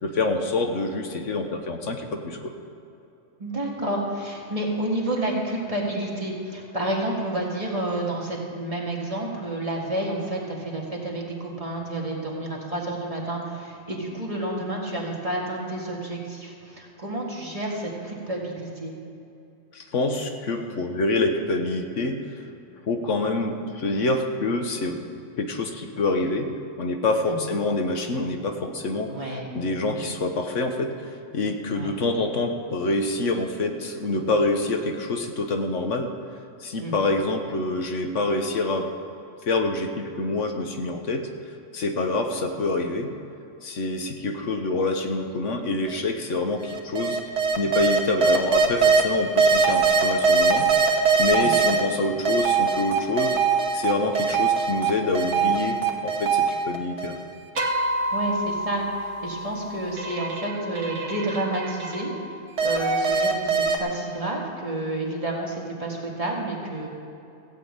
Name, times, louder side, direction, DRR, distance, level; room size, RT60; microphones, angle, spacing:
voice 1, 0.0-2.5 19.7-22.2 22.9-25.0 25.4-26.5 26.8-29.1 29.5-36.1 36.6-38.9 39.5-41.3 41.7-43.1 43.6-47.2 47.6-50.7 51.2-53.4 53.7-57.2, left 2 dB, 75° left, 5 dB, 1.3 m, -26 dB
voice 2, 3.4-18.9 27.3-27.4 29.1-29.5 29.8-30.1 31.7-31.9 36.8-36.9 51.4-51.6 58.1-62.1 62.6-66.9, right 1 dB, 25° right, -3 dB, 2.0 m, -30 dB
sound 1, 45.9-46.0 46.6-49.0 49.4-51.8 52.2-54.9 55.1-57.2 57.6-62.2 62.6-63.8, right 5 dB, 70° right, 1.5 m, -22 dB
15.5 x 5.9 x 8.5 m, 2.7 s
omnidirectional pair, 1.3 m